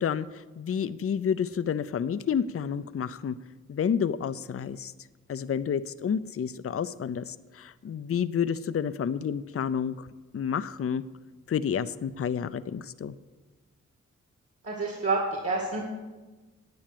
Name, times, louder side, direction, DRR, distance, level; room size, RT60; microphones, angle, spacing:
voice 1, 0.0-3.4 3.7-4.9 5.3-10.1 10.3-11.0 11.5-13.2, left 7 dB, 50° left, 14 dB, 0.5 m, -30 dB
voice 2, 14.6-15.8, right 3 dB, 50° right, -1 dB, 2.1 m, -28 dB
10.5 x 8.7 x 6.8 m, 1.2 s
cardioid pair, 55°, 31 cm